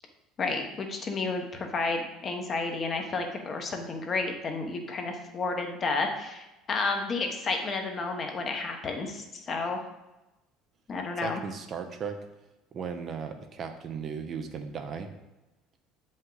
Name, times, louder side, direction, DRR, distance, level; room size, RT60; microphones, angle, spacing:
voice 1, 0.4-9.8 10.9-11.4, left 3 dB, 30° left, 4 dB, 1.0 m, -31 dB
voice 2, 11.2-12.2 12.7-15.1, right 6 dB, 35° right, 6 dB, 0.6 m, -36 dB
7.5 x 5.4 x 3.9 m, 1.0 s
cardioid pair, 140°, 0 cm